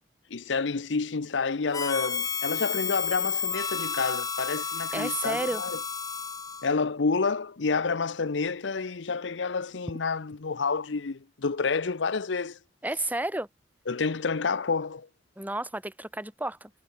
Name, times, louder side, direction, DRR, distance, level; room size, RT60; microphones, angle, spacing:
voice 1, 0.3-5.8 6.6-12.6 13.9-15.1, left 4 dB, 85° left, 0.7 m, -29 dB
Harmonica, 1.7-6.8, left 6 dB, 20° left, 0.9 m, -31 dB
voice 2, 4.9-5.6 12.8-13.5 15.4-16.7, right 1 dB, 10° right, 4.3 m, -31 dB
head